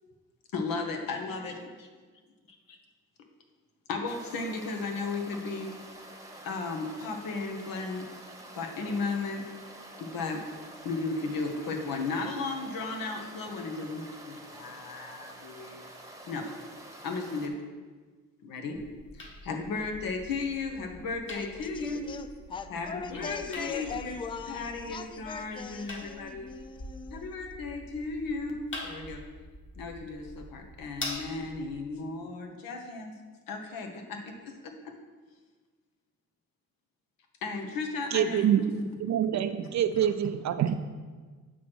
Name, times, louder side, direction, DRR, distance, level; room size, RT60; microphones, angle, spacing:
voice 1, 0.5-1.9 2.7-2.8 3.9-5.7 6.4-8.0 8.5-9.4 10.0-10.4 10.8-15.8 16.3-16.5 17.0-17.5 18.4-18.8 19.1-22.2 22.7-24.2 24.5-26.5 27.1-29.2 29.8-33.1 33.5-34.5 37.4-38.8, left 3 dB, 80° left, 4 dB, 1.1 m, -35 dB
sound 1, 4.1-17.5, right 1 dB, 10° right, 1.0 m, -48 dB
sound 2, 18.7-31.7, left 1 dB, 35° left, 1.4 m, -45 dB
voice 2, 21.4-27.3, left 6 dB, 15° left, 9 dB, 0.4 m, -41 dB
voice 3, 38.1-40.8, right 9 dB, 55° right, 10 dB, 0.5 m, -26 dB
8.2 x 3.1 x 6.1 m, 1.4 s
cardioid pair, 75°, 34 cm